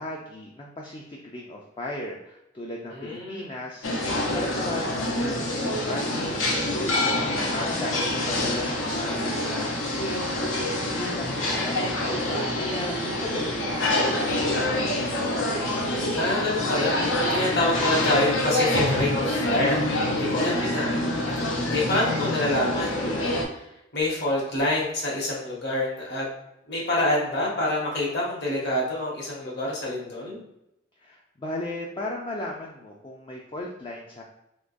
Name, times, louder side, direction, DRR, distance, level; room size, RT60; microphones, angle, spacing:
voice 1, 0.0-9.2 9.5-10.2 10.6-15.4 31.0-34.2, left 1 dB, 25° left, -1 dB, 0.4 m, -36 dB
voice 2, 2.9-3.5 7.5-7.8 16.1-19.9 20.3-20.9 21.7-23.7 23.9-26.2 26.7-30.4, left 1 dB, 60° left, -4 dB, 1.4 m, -27 dB
sound 1, 3.8-23.4, left 1 dB, 85° left, 0.8 m, -26 dB
3.7 x 3.0 x 2.5 m, 0.86 s
head